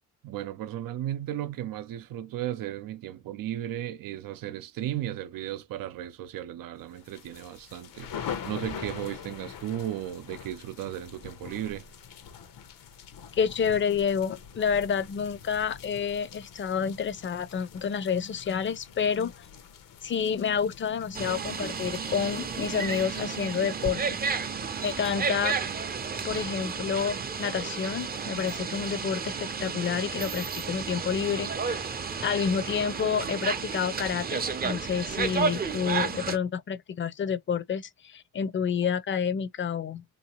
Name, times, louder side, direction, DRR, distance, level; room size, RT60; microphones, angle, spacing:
voice 1, 0.2-11.8, right 12 dB, 85° right, 0.6 m, -35 dB
sound 1, 7.0-23.9, left 7 dB, 80° left, 0.8 m, -44 dB
voice 2, 13.3-19.5 20.0-24.2 24.8-25.6 26.2-31.9 32.2-40.0, left 7 dB, 35° left, 0.5 m, -29 dB
sound 2, 21.1-36.4, right 5 dB, 30° right, 0.5 m, -32 dB
3.2 x 2.7 x 2.9 m
cardioid pair, 120°, 33 cm